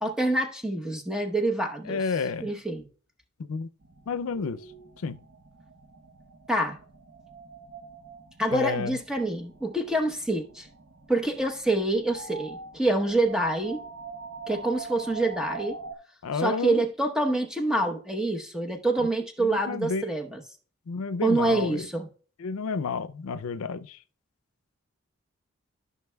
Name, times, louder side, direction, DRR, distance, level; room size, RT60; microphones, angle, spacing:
voice 1, 0.0-2.0 2.4-2.9 6.5-6.8 8.4-10.7 11.1-13.8 14.5-15.8 16.3-20.4 21.2-22.1, right 2 dB, 5° right, 0.9 m, -26 dB
voice 2, 1.9-2.5 3.5-3.7 4.1-4.6 5.0-5.2 8.5-9.0 16.2-16.8 19.4-20.2 20.9-21.9 22.4-24.0, left 5 dB, 90° left, 0.5 m, -30 dB
sound 1, 3.8-15.9, right 4 dB, 60° right, 0.8 m, -44 dB
14.0 x 5.9 x 2.3 m
head